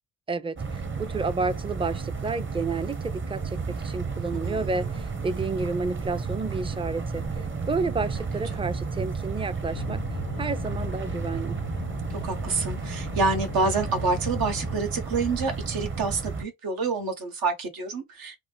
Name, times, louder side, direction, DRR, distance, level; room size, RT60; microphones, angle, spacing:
voice 1, 0.3-7.2 7.7-10.0 10.4-11.6, right 4 dB, 15° right, 0.4 m, -30 dB
sound 1, 0.6-16.4, right 5 dB, 35° right, 0.8 m, -32 dB
sound 2, 9.7-14.8, left 11 dB, 85° left, 0.5 m, -39 dB
voice 2, 12.1-18.4, right 4 dB, 80° right, 1.0 m, -28 dB
3.2 x 2.0 x 3.4 m
cardioid pair, 75°, 35 cm